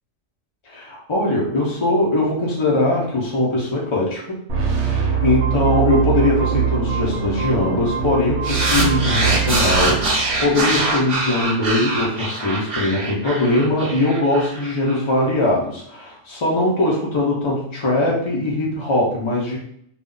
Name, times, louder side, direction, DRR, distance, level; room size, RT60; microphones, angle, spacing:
voice 1, 0.7-4.2 4.7-19.6, left 2 dB, 55° left, -3 dB, 0.3 m, -21 dB
sound 1, 4.5-10.6, right 7 dB, 70° right, 0.9 m, -22 dB
sound 2, 8.4-15.0, right 2 dB, 45° right, 0.4 m, -23 dB
2.3 x 2.1 x 3.6 m, 0.68 s
omnidirectional pair, 1.3 m